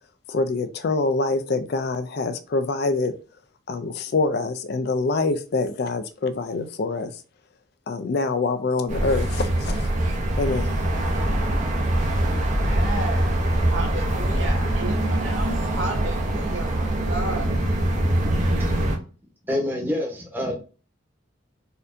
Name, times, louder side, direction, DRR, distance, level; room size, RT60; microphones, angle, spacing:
voice 1, 0.3-3.1 3.7-7.1 7.9-9.9 10.4-10.7, left 3 dB, 50° left, 10 dB, 0.4 m, -25 dB
sound 1, 8.9-19.0, right 1 dB, 35° right, 0.7 m, -23 dB
voice 2, 12.6-13.4 13.7-17.5, right 2 dB, 70° right, 2 dB, 1.2 m, -33 dB
voice 3, 18.6-18.9 19.5-20.5, left 1 dB, 10° right, -1 dB, 0.9 m, -27 dB
4.1 x 2.6 x 2.5 m, 0.35 s
head